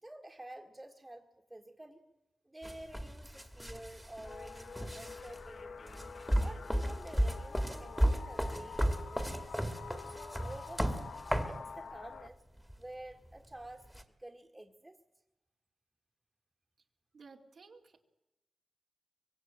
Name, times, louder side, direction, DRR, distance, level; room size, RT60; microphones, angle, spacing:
voice 1, 0.0-2.0 2.5-6.0 6.4-9.5 10.1-10.9 11.3-12.4 12.8-13.9 14.2-15.0, right 1 dB, 15° right, 0 dB, 1.9 m, -50 dB
sound 1, 2.6-11.6 12.6-12.7 13.9-14.0, equal, ahead, 2.0 m, -34 dB
sound 2, 4.2-12.3, left 5 dB, 80° left, 1.2 m, -48 dB
voice 2, 17.1-18.0, right 4 dB, 70° right, 1 dB, 2.4 m, -55 dB
24.0 x 21.5 x 9.0 m, 0.95 s
wide cardioid pair, 115°, 0 cm